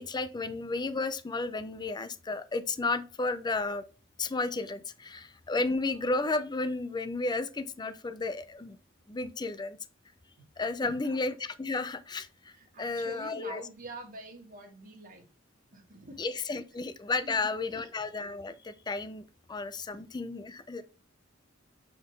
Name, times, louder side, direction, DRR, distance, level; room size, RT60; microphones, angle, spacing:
voice 1, 0.0-3.8 4.2-8.8 9.1-9.8 10.6-12.5 12.8-13.6 16.2-20.8, left 3 dB, 20° left, 0.5 m, -33 dB
voice 2, 10.8-11.2 12.5-15.3 15.7-16.2 17.2-18.0, right 2 dB, 45° right, 1.6 m, -46 dB
7.3 x 4.0 x 3.3 m
head